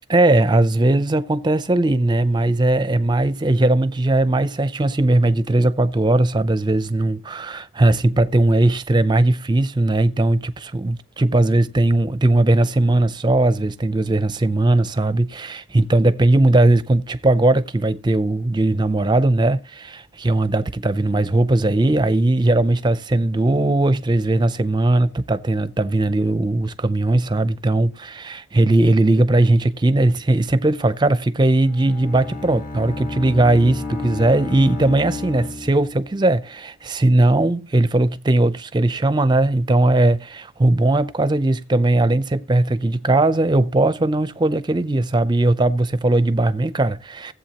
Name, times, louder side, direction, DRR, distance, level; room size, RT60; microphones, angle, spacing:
voice 1, 0.1-47.3, right 2 dB, 20° right, 0.5 m, -18 dB
Bowed string instrument, 31.6-36.3, left 3 dB, 45° left, 1.7 m, -32 dB
16.5 x 7.8 x 2.9 m
head